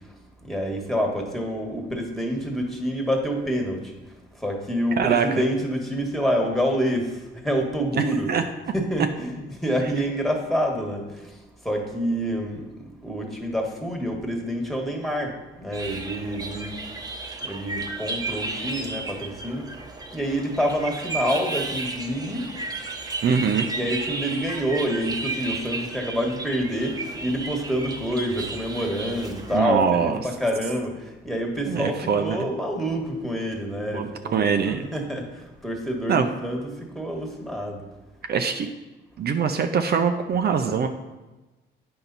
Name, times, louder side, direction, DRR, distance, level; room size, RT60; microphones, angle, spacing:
voice 1, 0.5-3.8 4.4-7.1 7.4-8.3 8.7-11.0 11.6-12.6 13.0-15.3 15.6-16.7 17.4-19.6 20.1-22.5 23.8-30.9 31.2-35.2 35.6-37.8, equal, ahead, 1 dB, 1.6 m, -27 dB
voice 2, 5.0-5.3 8.0-8.4 23.2-23.7 29.5-30.2 31.7-32.4 33.9-34.9 36.1-36.3 38.3-38.7 39.2-40.9, right 6 dB, 55° right, 6 dB, 0.6 m, -23 dB
sound 1, 15.7-29.6, right 3 dB, 20° right, 0.8 m, -33 dB
8.8 x 5.7 x 4.1 m, 1.1 s
cardioid pair, 90°, 20 cm